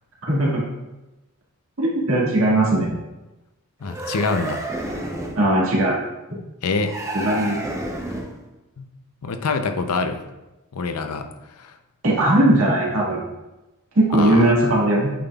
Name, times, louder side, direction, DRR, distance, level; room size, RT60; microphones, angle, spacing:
voice 1, 0.2-0.6 1.8-3.0 5.4-6.0 7.1-7.6 12.0-13.3 13.9-15.1, right 1 dB, 65° right, -5 dB, 1.9 m, -19 dB
voice 2, 3.8-4.9 6.6-6.9 8.8-8.9 9.2-10.2 10.7-11.3 11.6-11.7 14.1-14.5, left 4 dB, 90° left, 7 dB, 0.6 m, -25 dB
sound 1, 3.8-5.5 6.8-8.4, right 1 dB, 15° right, 0.6 m, -30 dB
8.5 x 5.5 x 2.3 m, 1.0 s
head